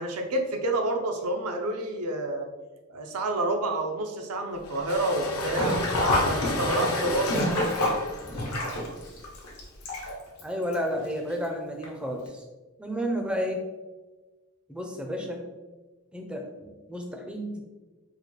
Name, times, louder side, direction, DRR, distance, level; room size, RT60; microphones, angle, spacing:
voice 1, 0.0-2.5 2.9-5.8 6.3-7.4, right 2 dB, 90° right, 3 dB, 0.5 m, -28 dB
sound 1, 4.6-10.1, left 2 dB, 65° left, 0.6 m, -32 dB
Sink (filling or washing), 5.5-10.4 10.7-10.8 11.8-11.9 12.3-12.4, left 1 dB, 85° left, 0.9 m, -28 dB
voice 2, 10.4-12.4 12.8-13.6 14.7-15.4 16.1-17.6, equal, 5° right, 2 dB, 0.4 m, -32 dB
3.9 x 2.3 x 3.1 m, 1.2 s
head